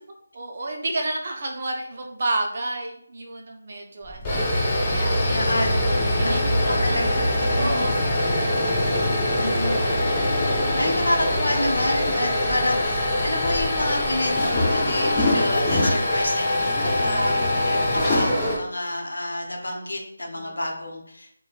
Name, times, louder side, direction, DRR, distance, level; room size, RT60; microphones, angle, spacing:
voice 1, 0.3-4.5 4.9-5.5 6.2-7.0 7.3-8.0 12.4-12.7 17.1-17.5 20.3-20.7, right 2 dB, 45° right, 1 dB, 0.5 m, -32 dB
sound 1, 4.0-18.6, left 1 dB, 15° left, 0.5 m, -23 dB
voice 2, 5.3-5.7 6.2-6.5 6.8-7.9 9.4-9.7 10.8-21.3, left 1 dB, 85° left, 1 dB, 0.7 m, -29 dB
2.9 x 2.2 x 2.4 m, 0.71 s
figure-of-eight pair, 165°, 0 cm